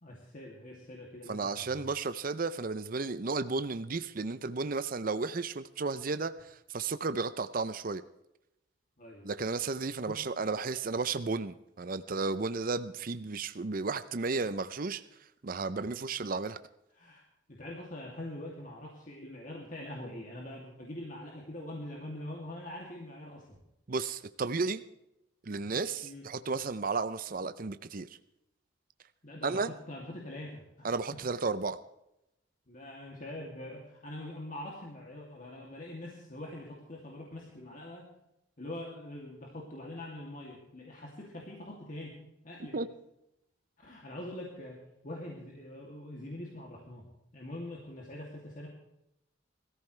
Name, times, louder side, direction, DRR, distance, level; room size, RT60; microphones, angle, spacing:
voice 1, 0.0-1.9 9.0-9.3 10.1-10.2 17.0-17.2 17.5-23.4 26.0-26.2 29.2-31.2 32.7-38.1 38.6-42.2 42.4-42.8 43.8-44.8 45.0-47.1 47.3-48.7, left 1 dB, 40° left, -2 dB, 2.7 m, -44 dB
voice 2, 1.3-8.0 9.2-15.0 15.4-16.6 23.9-24.8 25.4-28.2 29.4-29.7 30.8-31.8 42.7-42.9, right 4 dB, 45° right, 12 dB, 0.6 m, -33 dB
21.5 x 14.5 x 3.3 m, 0.86 s
head